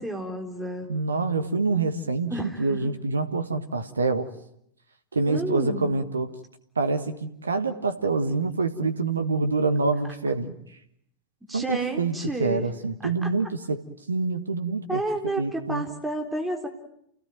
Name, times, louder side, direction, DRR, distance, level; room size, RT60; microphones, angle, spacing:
voice 1, 0.0-0.9 2.3-2.9 5.3-5.9 11.5-12.6 13.2-13.3 14.9-16.7, right 2 dB, 5° right, 3 dB, 4.2 m, -31 dB
voice 2, 0.9-4.3 5.1-6.3 6.7-10.8 11.5-13.8 14.1-15.8, right 3 dB, 75° right, 10 dB, 1.6 m, -26 dB
29.0 x 17.5 x 9.2 m, 0.74 s
figure-of-eight pair, 90°, 0 cm